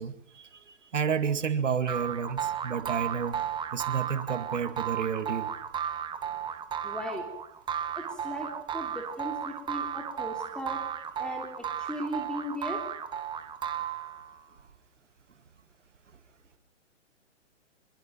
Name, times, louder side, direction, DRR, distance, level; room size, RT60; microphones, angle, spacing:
voice 1, 0.0-3.4 3.7-5.5, right 7 dB, 80° right, 10 dB, 2.3 m, -31 dB
sound 1, 1.9-14.4, right 9 dB, 15° right, 1.6 m, -34 dB
voice 2, 6.8-7.2 8.0-10.8 11.2-11.5 11.8-12.8, equal, ahead, 0 dB, 3.3 m, -37 dB
26.0 x 22.5 x 6.0 m, 0.76 s
hypercardioid pair, 130°, 36 cm